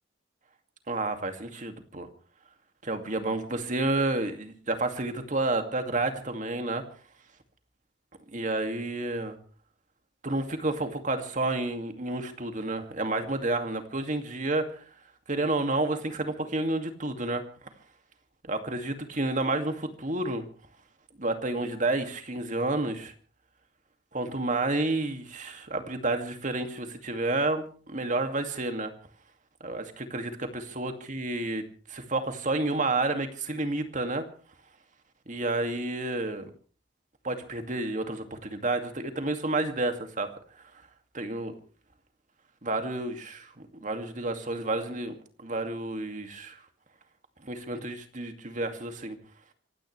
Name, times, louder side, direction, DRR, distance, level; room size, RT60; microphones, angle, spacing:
voice 1, 0.9-2.1 2.8-6.8 8.3-9.3 10.2-14.8 15.3-17.4 18.5-20.4 21.2-23.1 24.1-28.9 29.6-31.6 31.9-34.2 35.3-36.5 37.2-40.3 41.1-41.5 42.6-46.6 47.4-49.2, right 2 dB, 40° right, 6 dB, 2.3 m, -30 dB
26.0 x 17.0 x 3.3 m, 0.39 s
head